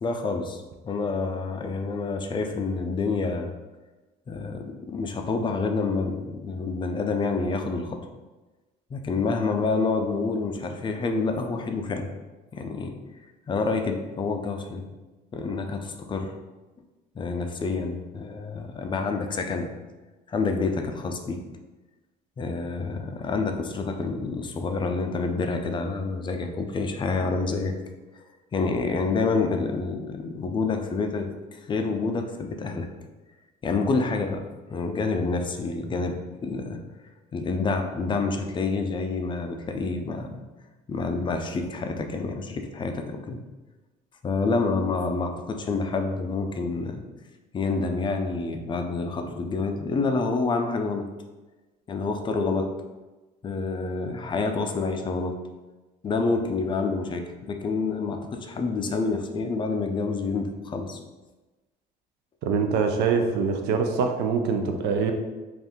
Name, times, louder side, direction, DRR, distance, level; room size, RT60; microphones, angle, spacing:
voice 1, 0.0-3.5 4.3-8.0 8.9-12.1 12.5-12.9 13.5-14.8 15.3-16.3 17.1-19.7 20.3-21.4 22.4-27.7 28.5-32.9 33.6-34.4 34.7-36.8 37.3-40.4 40.9-43.4 44.2-47.0 47.5-51.1 51.9-52.7 53.4-55.3 56.0-61.0, left 4 dB, 30° left, 5 dB, 0.4 m, -28 dB
voice 2, 62.4-65.1, right 5 dB, 80° right, 5 dB, 0.5 m, -24 dB
2.6 x 2.4 x 3.6 m, 1.2 s
cardioid pair, 110°, 17 cm